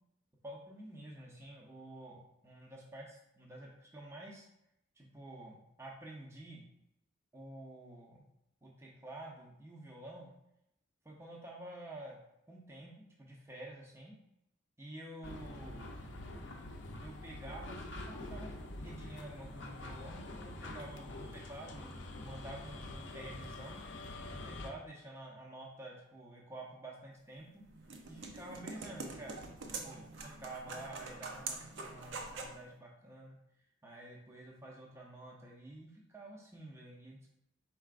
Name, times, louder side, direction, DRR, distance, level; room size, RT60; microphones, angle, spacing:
voice 1, 0.4-4.5 5.0-6.6 7.3-8.2 8.6-10.3 11.0-12.2 12.5-14.2 14.8-16.1 17.0-23.8 24.3-27.6 28.1-33.4 33.8-37.3, right 1 dB, 15° right, -2 dB, 0.6 m, -49 dB
sound 1, 15.2-24.7, left 2 dB, 60° left, 0.5 m, -46 dB
sound 2, 27.4-32.6, right 3 dB, 65° right, 0.6 m, -45 dB
4.6 x 4.3 x 2.4 m, 0.82 s
head